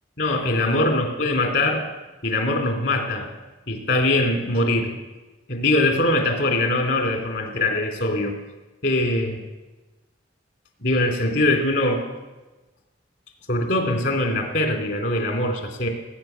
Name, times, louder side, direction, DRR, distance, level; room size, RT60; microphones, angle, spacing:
voice 1, 0.2-1.9 2.2-3.3 3.7-5.0 5.5-8.4 8.8-9.4 10.8-12.0 13.5-15.9, left 2 dB, 65° left, 3 dB, 2.7 m, -22 dB
19.0 x 6.6 x 9.1 m, 1.2 s
head